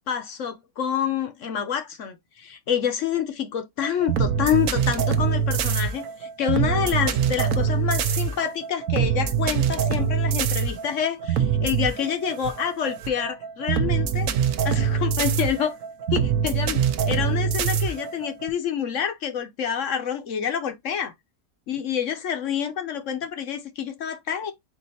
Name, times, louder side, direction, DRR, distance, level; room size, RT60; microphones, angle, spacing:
voice 1, 0.1-14.3 14.6-15.7 16.1-16.8 17.1-21.1 21.7-24.5, left 8 dB, 60° left, 1.0 m, -27 dB
sound 1, 3.8-18.5, right 7 dB, 65° right, 0.9 m, -24 dB
4.6 x 2.6 x 4.1 m
omnidirectional pair, 1.7 m